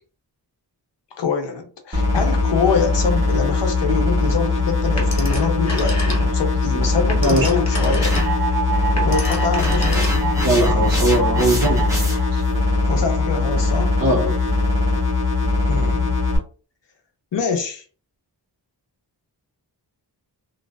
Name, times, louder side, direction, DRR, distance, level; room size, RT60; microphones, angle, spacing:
voice 1, 1.2-8.1 9.0-10.1 12.9-14.0 15.7-16.2 17.3-17.8, left 5 dB, 75° left, 4 dB, 0.7 m, -24 dB
sound 1, 1.9-16.4, left 3 dB, 30° right, 1.1 m, -20 dB
Telephone, 5.0-6.5 6.9-10.5, left 1 dB, 40° left, 0.9 m, -30 dB
sound 2, 8.0-12.4, right 3 dB, 5° right, 0.7 m, -26 dB
voice 2, 10.4-12.0 12.3-12.4 14.0-14.4, right 1 dB, 50° right, 2 dB, 0.9 m, -20 dB
2.6 x 2.1 x 2.3 m, 0.39 s
wide cardioid pair, 75°, 43 cm